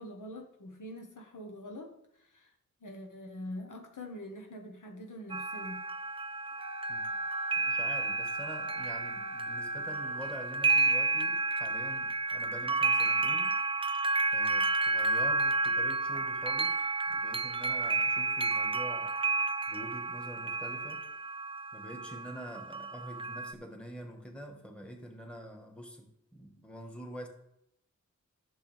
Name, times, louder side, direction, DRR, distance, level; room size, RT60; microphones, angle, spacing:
voice 1, 0.0-2.5 2.8-5.8, left 1 dB, 85° left, 2 dB, 1.4 m, -44 dB
sound 1, 5.3-23.5, right 3 dB, 20° right, 0.4 m, -31 dB
Wind instrument woodwind instrument, 6.6-10.4, right 1 dB, 65° right, 0.6 m, -44 dB
voice 2, 6.9-7.2 7.6-13.6 14.3-16.8 17.1-19.1 19.7-21.0 21.7-27.3, equal, 5° left, 3 dB, 1.6 m, -46 dB
11.0 x 6.8 x 3.5 m, 0.78 s
wide cardioid pair, 85°, 30 cm